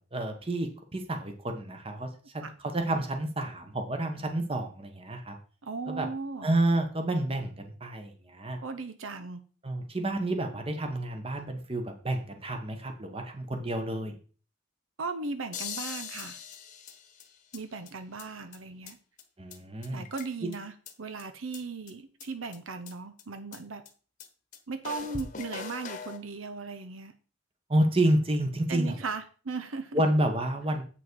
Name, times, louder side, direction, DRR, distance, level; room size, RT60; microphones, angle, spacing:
voice 1, 0.0-5.4 5.9-6.1 6.4-8.6 9.6-14.1 19.4-20.0 20.4-20.5 27.7-29.0 29.9-30.8, right 1 dB, 30° right, 5 dB, 1.3 m, -29 dB
voice 2, 5.6-6.5 8.6-9.4 15.0-16.4 17.5-19.0 19.9-20.7 21.0-23.8 24.7-27.1 28.7-30.0, right 4 dB, 80° right, 10 dB, 0.8 m, -37 dB
sound 1, 15.5-17.6 17.9-18.0 18.2-18.3 18.5-18.6 18.9-19.0 19.2-19.3 19.5-19.6 19.8-20.6 20.9-21.0 21.2-21.3 21.5-21.6 21.9-22.0 22.2-22.3 22.5-22.6 22.9-23.0 23.2-23.3 23.5-23.6 23.9-24.0 24.2-24.3 24.5-24.6 24.8-26.2, left 6 dB, 35° left, 1.1 m, -40 dB
8.1 x 6.1 x 4.6 m, 0.38 s
head